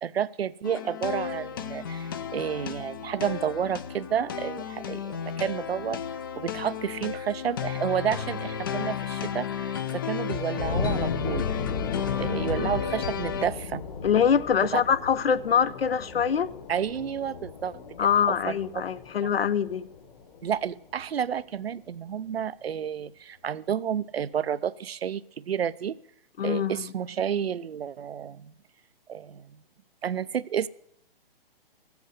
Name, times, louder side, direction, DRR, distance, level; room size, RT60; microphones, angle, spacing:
voice 1, 0.0-6.0 6.4-11.6 12.2-13.8 14.7-14.8 16.7-17.8 18.2-18.6 20.4-26.0 26.4-28.5 29.1-29.6 30.0-30.7, right 8 dB, 90° right, 16 dB, 0.6 m, -30 dB
sound 1, 0.6-13.5, left 8 dB, 25° left, 0.4 m, -33 dB
sound 2, 10.6-21.4, left 5 dB, 40° left, 1.6 m, -35 dB
voice 2, 14.0-16.5 18.0-19.9 26.4-26.9, left 7 dB, 80° left, 16 dB, 0.9 m, -24 dB
15.5 x 8.1 x 6.7 m, 0.75 s
hypercardioid pair, 150°, 30 cm